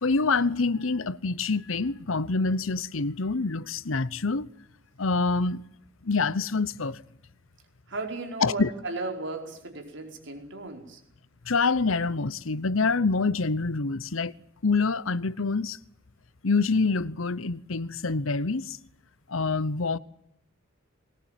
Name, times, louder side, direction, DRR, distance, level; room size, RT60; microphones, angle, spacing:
voice 1, 0.0-4.5 5.0-5.6 6.0-7.0 8.4-8.7 11.4-14.3 14.6-15.8 16.4-18.8 19.3-20.0, left 4 dB, 75° left, 1.0 m, -26 dB
voice 2, 7.9-11.0, right 3 dB, 65° right, 4.9 m, -35 dB
21.5 x 20.0 x 9.2 m
head